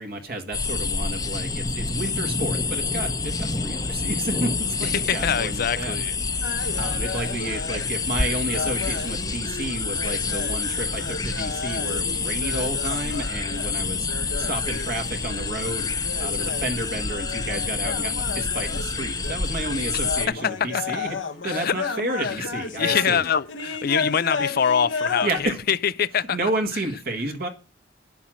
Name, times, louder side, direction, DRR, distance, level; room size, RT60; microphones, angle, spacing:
voice 1, 0.0-6.0 6.3-6.4 6.7-14.1 14.4-15.9 16.2-21.2 21.4-23.3 25.2-25.6 26.3-27.5, right 2 dB, 55° right, 1.7 m, -31 dB
sound 1, 0.5-20.3, left 4 dB, 20° left, 0.9 m, -28 dB
voice 2, 4.8-6.1 20.7-20.8 21.4-21.7 22.8-26.4, left 7 dB, 55° left, 0.5 m, -24 dB
sound 2, 6.4-23.1 23.5-25.4, left 4 dB, 85° left, 1.2 m, -33 dB
10.0 x 7.2 x 7.6 m
head